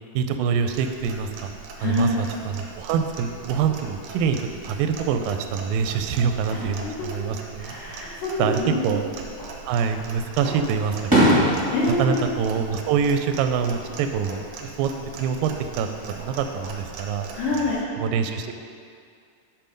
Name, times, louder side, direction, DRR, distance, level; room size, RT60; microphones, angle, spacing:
voice 1, 0.1-1.5 1.8-4.4 4.6-7.7 8.4-9.0 9.6-11.5 12.0-15.5 15.8-17.3 18.0-18.6, right 6 dB, 90° right, 7 dB, 2.3 m, -25 dB
Clock, 0.7-17.8, right 4 dB, 75° right, 1.6 m, -41 dB
voice 2, 1.8-2.2 6.5-6.9 7.6-9.0 11.7-12.2 17.3-17.8, left 2 dB, 75° left, -11 dB, 3.0 m, -26 dB
Fireworks, 9.3-10.0 10.4-13.6 13.9-14.5 16.0-16.8, equal, 10° right, 1.1 m, -24 dB
6.9 x 5.8 x 5.2 m, 2.3 s
omnidirectional pair, 3.9 m